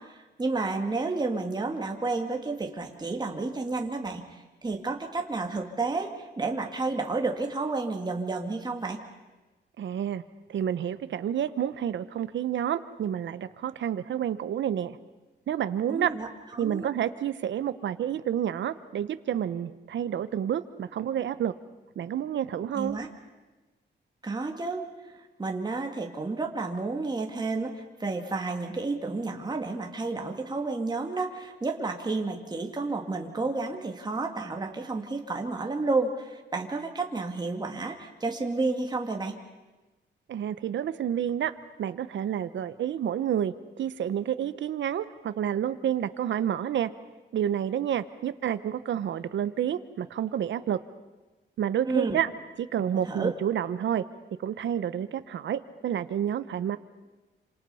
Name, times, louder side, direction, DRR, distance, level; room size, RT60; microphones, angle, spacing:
voice 1, 0.0-9.0 15.9-16.3 16.5-16.9 22.7-23.1 24.2-39.4 51.9-52.2 53.1-53.3, right 3 dB, 20° right, 2 dB, 2.1 m, -31 dB
voice 2, 9.8-10.2 10.5-15.0 15.5-16.1 16.6-21.5 22.0-23.0 40.3-41.5 41.8-46.9 47.3-50.8 51.6-52.3 52.6-54.0 54.4-56.8, right 9 dB, 80° right, 13 dB, 1.0 m, -29 dB
28.0 x 26.5 x 5.6 m, 1.2 s
cardioid pair, 120°, 19 cm